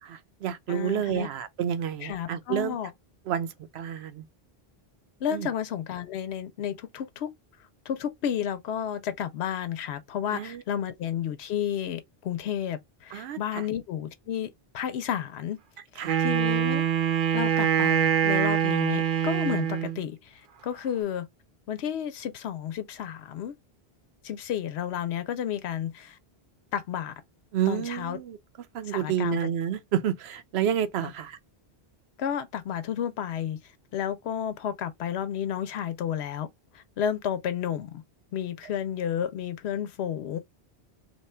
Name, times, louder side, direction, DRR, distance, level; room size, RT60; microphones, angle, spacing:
voice 1, 0.0-2.8 3.3-3.5 3.7-4.2 5.3-5.5 10.3-10.6 13.1-13.4 16.0-16.2 27.5-28.4 28.7-31.4, right 9 dB, 85° right, 0.9 m, -29 dB
voice 2, 0.7-1.3 2.0-2.9 5.2-7.3 7.9-15.6 15.9-16.8 17.3-21.3 21.7-23.5 24.2-26.2 26.7-27.1 27.7-28.2 28.8-29.5 31.0-31.1 32.2-36.5 36.7-38.0 38.3-40.4, left 9 dB, 90° left, 0.9 m, -32 dB
Wind instrument woodwind instrument, 16.0-20.0, right 9 dB, 60° right, 0.7 m, -24 dB
2.9 x 2.2 x 4.2 m
omnidirectional pair, 1.1 m